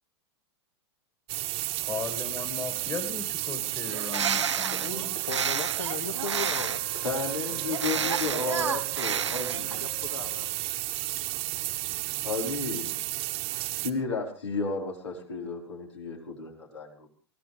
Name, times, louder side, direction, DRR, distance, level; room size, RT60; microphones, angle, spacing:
sound 1, 1.3-13.9, right 18 dB, 45° right, 1.5 m, -32 dB
voice 1, 1.8-5.1 7.5-8.0, left 5 dB, 20° left, 9 dB, 2.2 m, -38 dB
Bird, 3.8-7.0 7.7-9.9, right 7 dB, 85° right, 0.9 m, -31 dB
voice 2, 4.5-5.3 7.0-9.8 12.2-13.0 13.5-17.1, left 4 dB, 85° left, 0 dB, 5.1 m, -33 dB
voice 3, 5.2-6.8 8.9-9.3 9.7-10.7, left 8 dB, 60° left, 6 dB, 1.9 m, -38 dB
Wind instrument woodwind instrument, 6.1-10.7, left 1 dB, 70° right, 1.7 m, -47 dB
23.0 x 17.0 x 3.6 m, 0.40 s
hypercardioid pair, 100°, 14 cm